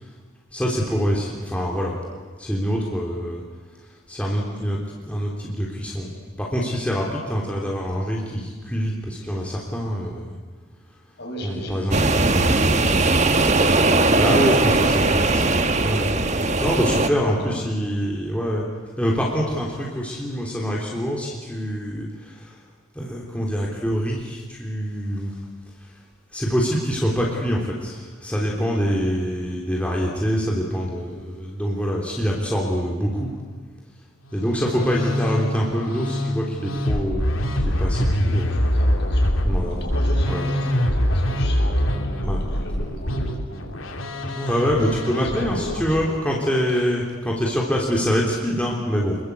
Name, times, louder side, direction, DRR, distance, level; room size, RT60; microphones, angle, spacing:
voice 1, 0.5-2.0 2.4-3.4 4.1-4.8 5.1-6.1 6.4-10.3 11.4-12.1 14.1-15.5 15.8-16.1 16.6-18.7 19.0-22.6 23.0-25.4 26.3-33.3 34.3-38.7 39.4-39.8 40.3-40.5 41.9-42.4 44.3-49.2, equal, 5° left, -3 dB, 3.5 m, -25 dB
voice 2, 11.2-13.3 17.1-17.2 17.5-17.7 38.0-39.3 39.7-43.7 45.1-46.2, equal, 55° left, 0 dB, 7.4 m, -35 dB
sound 1, 11.9-17.1, right 2 dB, 35° right, 1.4 m, -19 dB
Musical instrument, 34.2-46.0, equal, 85° left, 3.1 m, -24 dB
29.5 x 22.0 x 8.5 m, 1.4 s
head